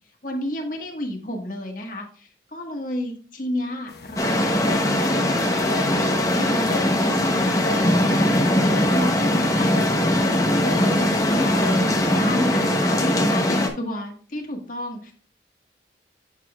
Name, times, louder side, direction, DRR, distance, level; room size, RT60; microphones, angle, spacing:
voice 1, 0.2-9.7 10.6-11.7 12.1-15.1, left 1 dB, 50° left, 2 dB, 1.6 m, -32 dB
sound 1, 3.9-12.3, left 4 dB, 65° left, 1.1 m, -39 dB
sound 2, 4.2-13.7, left 1 dB, 20° left, 0.9 m, -20 dB
8.1 x 6.9 x 2.4 m, 0.42 s
head